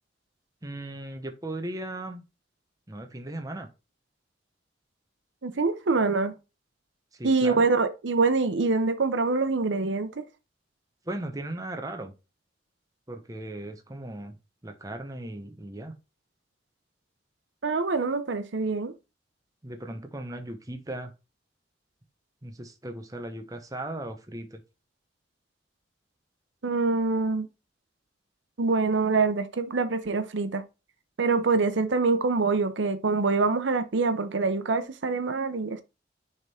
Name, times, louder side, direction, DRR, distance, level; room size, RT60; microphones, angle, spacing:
voice 1, 0.6-2.2 2.9-3.7 7.1-7.7 11.1-12.1 13.1-14.4 14.6-15.9 19.6-21.1 22.4-24.6, right 1 dB, 20° right, 0.9 m, -37 dB
voice 2, 5.4-6.3 7.2-10.3 17.6-18.9 26.6-27.5 28.6-30.6 31.2-35.8, right 4 dB, 90° right, 0.7 m, -25 dB
6.5 x 3.7 x 4.3 m
head